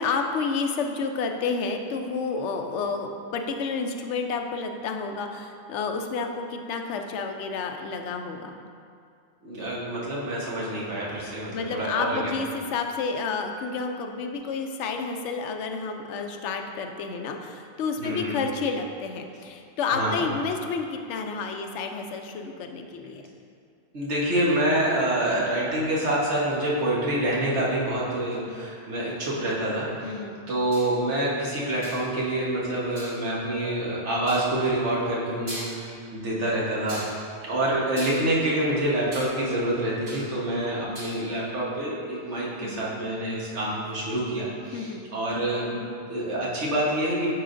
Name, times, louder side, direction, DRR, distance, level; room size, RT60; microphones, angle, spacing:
voice 1, 0.0-8.5 11.5-23.2 30.0-30.4 42.6-42.9 44.7-45.1, left 4 dB, 90° left, 4 dB, 0.9 m, -30 dB
voice 2, 9.4-12.3 18.0-18.3 19.9-20.2 23.9-30.2 30.5-37.0 37.4-47.3, right 1 dB, 80° right, -5 dB, 1.5 m, -27 dB
sound 1, 30.7-31.0 31.8-32.1 33.0-33.2 34.3-34.5 35.1-35.2 35.5-36.0 36.9-37.2 38.0-39.3 39.6-40.3 40.6-41.1, equal, 60° right, 2.0 m, -39 dB
9.7 x 4.7 x 2.5 m, 2.4 s
omnidirectional pair, 1.2 m